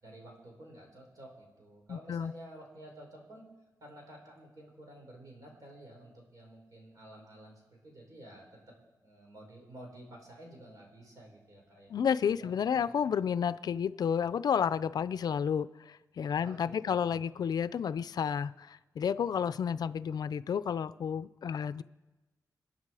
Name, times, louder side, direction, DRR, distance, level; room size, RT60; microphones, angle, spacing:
voice 1, 0.0-3.5 3.8-8.4 9.0-11.9 12.4-12.9 16.4-17.2, right 1 dB, 55° right, 5.5 m, -51 dB
voice 2, 1.9-2.3 11.9-21.8, left 7 dB, 70° left, 0.5 m, -31 dB
27.5 x 10.5 x 4.9 m
wide cardioid pair, 120°, 7 cm